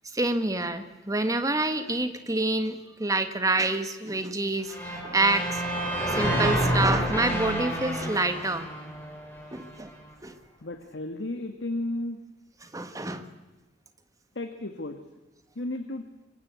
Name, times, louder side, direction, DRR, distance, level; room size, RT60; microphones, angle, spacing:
voice 1, 0.1-4.8 5.0-5.6 6.2-8.7 9.5-9.9 10.2-10.3 12.7-13.2, right 2 dB, 20° right, 9 dB, 1.6 m, -27 dB
sound 1, 4.7-9.7, right 1 dB, 10° left, 5.6 m, -29 dB
voice 2, 10.6-12.2 14.3-15.0 15.6-16.0, left 1 dB, 70° left, 7 dB, 1.6 m, -33 dB
24.5 x 22.0 x 8.2 m, 1.1 s
head